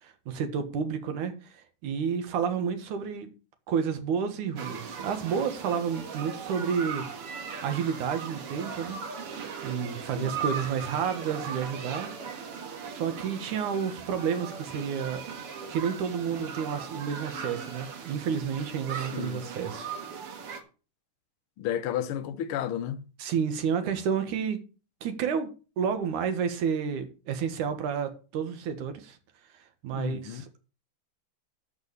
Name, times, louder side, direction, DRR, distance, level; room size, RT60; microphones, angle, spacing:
voice 1, 0.0-3.3 3.7-9.0 9.6-12.4 12.8-15.2 15.7-19.9 23.2-24.6 25.0-25.5 25.8-29.2 29.8-30.7, right 7 dB, 75° right, 2.9 m, -30 dB
sound 1, 4.6-20.6, right 6 dB, 50° right, 2.2 m, -38 dB
voice 2, 19.1-19.4 21.6-23.0 29.9-30.4, left 10 dB, 85° left, 1.2 m, -32 dB
13.0 x 4.8 x 6.8 m
omnidirectional pair, 3.7 m